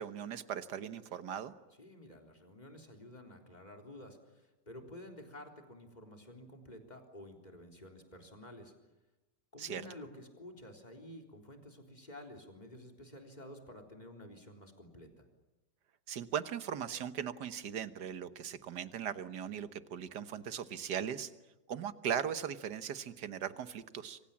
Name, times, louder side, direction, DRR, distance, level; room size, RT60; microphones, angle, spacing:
voice 1, 0.0-1.6 9.6-9.8 16.1-21.3 21.7-24.2, right 8 dB, 70° right, 12 dB, 1.8 m, -39 dB
voice 2, 1.8-8.7 9.5-15.3, left 1 dB, 25° left, 4 dB, 3.9 m, -51 dB
28.0 x 25.0 x 7.4 m, 1.1 s
omnidirectional pair, 1.9 m